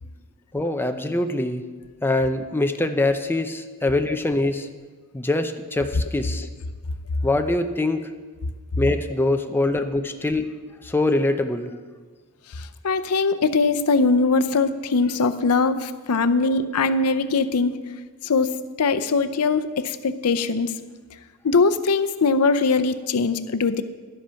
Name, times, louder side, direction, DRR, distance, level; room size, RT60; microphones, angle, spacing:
voice 1, 0.5-1.6 2.0-4.7 5.1-6.5 7.2-8.1 8.8-10.5 10.8-11.7, left 2 dB, 10° left, 6 dB, 0.5 m, -23 dB
voice 2, 12.5-17.8 18.2-20.7 21.4-23.8, left 4 dB, 85° left, 11 dB, 0.6 m, -21 dB
11.5 x 7.8 x 5.7 m, 1.4 s
head